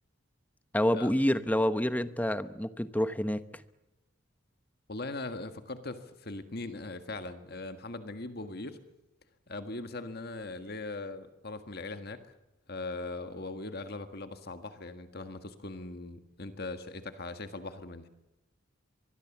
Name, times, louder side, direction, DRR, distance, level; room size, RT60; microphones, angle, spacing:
voice 1, 0.7-3.4, equal, 10° left, 12 dB, 0.9 m, -28 dB
voice 2, 4.9-8.8 9.5-12.3 12.7-18.1, left 2 dB, 50° left, 8 dB, 1.7 m, -40 dB
24.5 x 21.5 x 7.3 m, 0.97 s
head